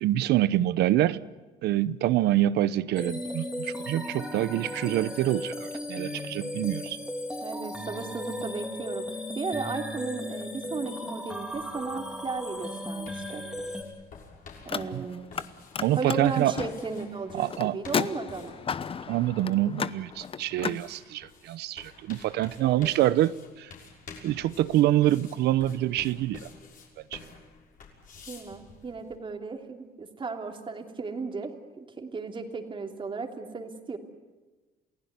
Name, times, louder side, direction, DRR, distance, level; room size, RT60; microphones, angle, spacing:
voice 1, 0.0-1.2 1.6-7.0 14.9-15.0 15.8-16.5 17.3-17.8 19.1-23.7 24.2-26.4 27.1-27.2, right 14 dB, 75° right, 0.8 m, -26 dB
sound 1, 3.0-13.8, left 1 dB, 5° right, 3.5 m, -36 dB
voice 2, 7.4-13.5 14.6-15.2 15.9-18.6 22.6-22.9 28.3-34.0, right 4 dB, 30° right, 2.9 m, -35 dB
sound 2, 11.5-29.2, left 5 dB, 55° left, 6.2 m, -50 dB
Car, 14.6-15.5 15.7-20.8, left 6 dB, 35° left, 0.8 m, -34 dB
29.0 x 16.0 x 9.5 m
cardioid pair, 110°, 17 cm